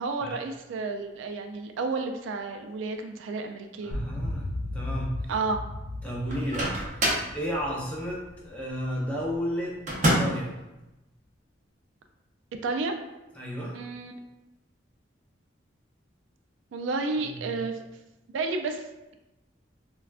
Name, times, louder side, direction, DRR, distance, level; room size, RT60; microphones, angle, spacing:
voice 1, 0.0-3.9 5.3-5.6 12.6-13.0 13.7-14.2 16.7-17.8 18.3-18.8, right 3 dB, 85° right, 6 dB, 0.3 m, -31 dB
voice 2, 3.8-5.3 6.0-10.5 13.3-13.8 17.2-17.6, equal, 5° left, -5 dB, 0.5 m, -33 dB
sound 1, 3.9-9.3, left 1 dB, 80° left, 0.4 m, -36 dB
Microwave oven, 6.3-7.3 9.9-10.5, equal, 40° right, 0.6 m, -26 dB
3.4 x 2.2 x 2.3 m, 0.98 s
head